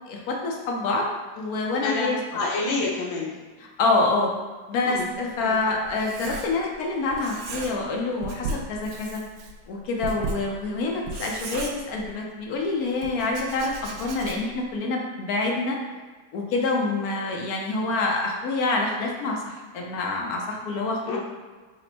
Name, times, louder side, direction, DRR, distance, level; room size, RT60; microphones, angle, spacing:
voice 1, 0.1-1.1 1.4-2.2 3.8-4.4 4.7-9.2 9.7-15.8 16.3-21.2, left 3 dB, 70° left, 0 dB, 0.9 m, -26 dB
voice 2, 1.8-3.3 4.8-5.1 5.4-5.5 21.1-21.2, left 3 dB, 85° left, -3 dB, 1.6 m, -28 dB
Writing, 5.0-6.8 7.1-8.0 8.2-12.4 13.0-14.6, right 3 dB, 90° right, 0.7 m, -36 dB
4.3 x 2.1 x 4.0 m, 1.4 s
omnidirectional pair, 2.1 m